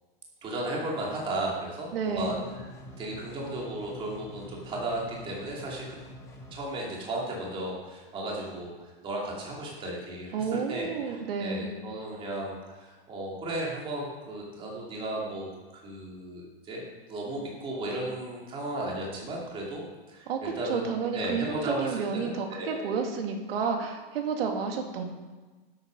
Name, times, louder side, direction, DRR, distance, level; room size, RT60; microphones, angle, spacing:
voice 1, 0.4-2.7 3.0-6.0 6.5-16.8 17.1-22.9, right 1 dB, 20° right, -3 dB, 2.6 m, -35 dB
voice 2, 1.9-2.4 10.3-11.7 20.3-25.0, right 5 dB, 80° right, 3 dB, 2.2 m, -31 dB
sound 1, 2.2-6.5, equal, 10° left, 1.4 m, -46 dB
12.0 x 8.5 x 5.2 m, 1.3 s
supercardioid pair, 170°, 29 cm